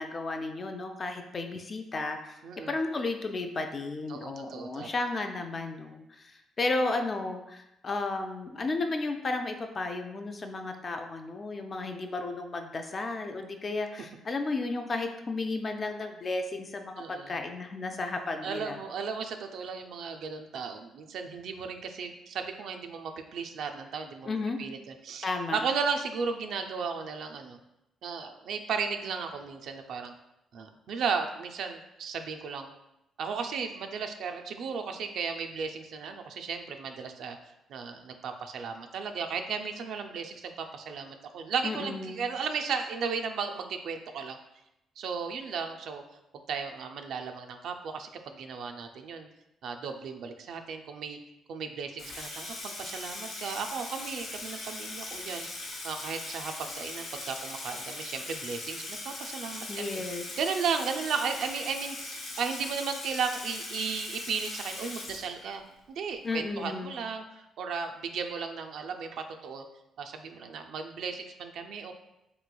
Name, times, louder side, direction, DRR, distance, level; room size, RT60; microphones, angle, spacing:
voice 1, 0.0-2.4 2.7-18.8 24.2-24.6 25.2-25.6 41.6-42.2 59.7-60.2 66.2-67.0, left 3 dB, 40° left, 5 dB, 0.3 m, -33 dB
voice 2, 2.4-2.7 4.1-4.9 17.0-17.4 18.4-24.3 24.6-25.3 25.5-27.6 28.0-30.1 30.5-32.7 33.2-37.4 37.7-44.4 45.0-46.0 46.3-49.3 49.6-51.2 51.5-60.0 60.4-65.6 65.9-69.6 70.0-71.9, right 5 dB, 75° right, 5 dB, 0.3 m, -35 dB
Water tap faucet / Sink (filling or washing), 52.0-65.7, left 2 dB, 75° left, 0.7 m, -40 dB
3.2 x 3.0 x 2.2 m, 0.87 s
cardioid pair, 90°, 0 cm